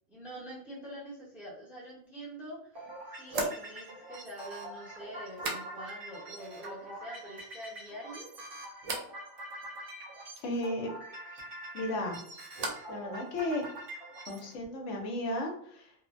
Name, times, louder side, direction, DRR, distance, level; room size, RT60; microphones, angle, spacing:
voice 1, 0.1-2.8 3.2-8.3, right 1 dB, ahead, -4 dB, 0.6 m, -45 dB
sound 1, 2.0-2.1 3.3-6.1 6.4-7.0 7.3-8.0 8.8-9.2 11.6-13.0 13.3-13.9, right 2 dB, 80° right, 0.3 m, -41 dB
sound 2, 2.8-14.5, right 1 dB, 50° right, 1.1 m, -45 dB
voice 2, 10.4-10.9 11.7-12.2 12.9-13.6 14.3-15.9, left 1 dB, 80° left, 2 dB, 0.9 m, -34 dB
3.0 x 2.0 x 2.5 m, 0.65 s
omnidirectional pair, 1.3 m